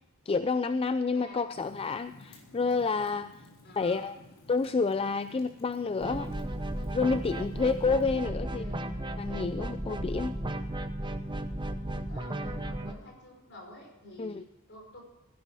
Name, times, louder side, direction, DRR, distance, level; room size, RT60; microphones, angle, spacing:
voice 1, 0.3-3.3 3.8-4.2 4.5-6.3 6.9-8.6 9.2-10.3 14.2-14.4, left 4 dB, 25° left, 12 dB, 0.4 m, -29 dB
voice 2, 1.1-1.5 3.6-4.1 8.2-8.9 12.1-15.0, left 1 dB, 55° left, 0 dB, 5.2 m, -49 dB
Fire, 1.5-8.0, left 1 dB, 80° left, 3.8 m, -54 dB
sound 1, 6.0-12.9, right 1 dB, 25° right, 0.9 m, -35 dB
16.5 x 11.0 x 4.8 m, 1.0 s
head